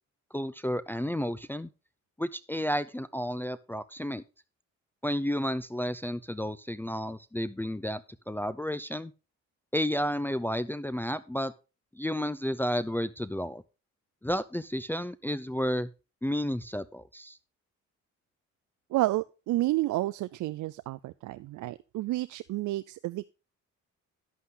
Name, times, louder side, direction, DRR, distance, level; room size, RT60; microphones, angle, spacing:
voice 1, 0.3-1.7 2.2-4.2 5.0-9.1 9.7-11.5 11.9-13.6 14.2-15.9 16.2-17.4, equal, 5° left, 12 dB, 0.5 m, -31 dB
voice 2, 18.9-23.3, right 17 dB, 80° right, 15 dB, 0.5 m, -30 dB
11.0 x 8.3 x 3.8 m, 0.31 s
cardioid pair, 90°, 30 cm